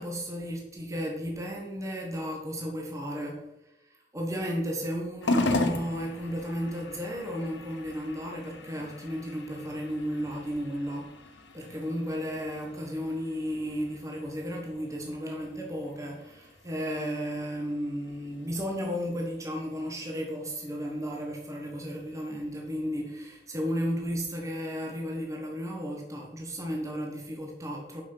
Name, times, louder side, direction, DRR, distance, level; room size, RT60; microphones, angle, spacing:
voice 1, 0.0-3.5 3.8-28.0, equal, 15° right, 0 dB, 1.2 m, -34 dB
sound 1, 5.2-23.8, left 2 dB, 70° left, 1.0 m, -38 dB
7.2 x 5.8 x 5.5 m, 0.92 s
head